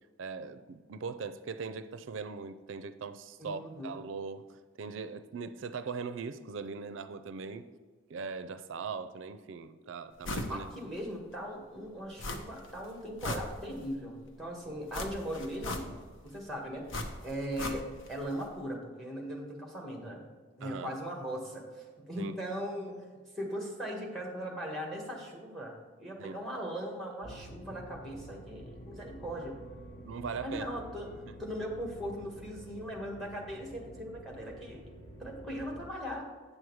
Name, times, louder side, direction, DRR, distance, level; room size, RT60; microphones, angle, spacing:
voice 1, 0.2-4.4 4.8-7.7 8.1-10.7 20.6-20.9 22.2-22.3 26.2-26.3 30.0-30.7 31.3-31.4, right 5 dB, 75° right, 11 dB, 0.4 m, -40 dB
voice 2, 3.4-4.0 10.5-16.8 17.2-20.2 20.5-29.6 30.4-31.1 31.4-34.8 35.2-36.2, equal, ahead, 0 dB, 1.5 m, -39 dB
sound 1, 10.2-10.6 11.0-11.1 12.2-12.7 13.0-14.0 14.9-16.2 16.9-18.1 18.4-18.5, left 2 dB, 75° left, 0.9 m, -38 dB
sound 2, 27.2-35.8, right 1 dB, 45° left, 1.4 m, -49 dB
8.7 x 6.4 x 4.6 m, 1.5 s
head